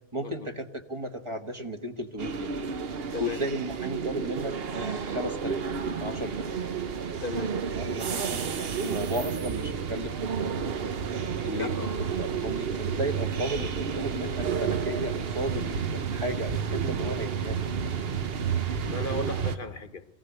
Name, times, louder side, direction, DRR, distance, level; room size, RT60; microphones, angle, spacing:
voice 1, 0.1-2.6 3.2-5.6 6.0-6.5 7.3-10.7 11.4-11.7 12.1-17.6, equal, 30° right, 5 dB, 1.3 m, -35 dB
sound 1, 2.2-19.6, right 6 dB, 70° right, 1.2 m, -31 dB
voice 2, 7.2-7.6 11.5-11.9 18.8-20.1, left 3 dB, 55° left, 12 dB, 1.2 m, -35 dB
23.0 x 16.0 x 8.1 m, 0.99 s
omnidirectional pair, 1.1 m